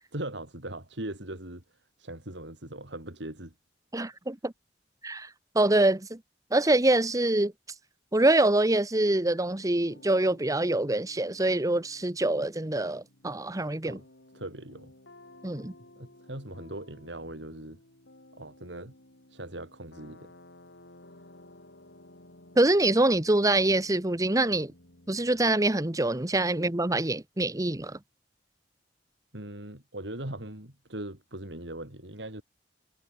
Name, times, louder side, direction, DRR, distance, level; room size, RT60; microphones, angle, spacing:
voice 1, 0.1-1.6 2.0-3.5 13.8-14.1 14.3-14.9 16.0-17.8 18.3-18.9 19.3-20.3 29.3-32.4, right 1 dB, 80° right, 5.1 m, -40 dB
voice 2, 3.9-4.5 5.0-5.3 5.5-6.2 6.5-7.5 8.1-14.0 15.4-15.7 22.6-24.7 25.1-28.0, right 2 dB, 20° right, 1.1 m, -25 dB
sound 1, 9.7-25.6, left 1 dB, 85° left, 4.9 m, -55 dB
head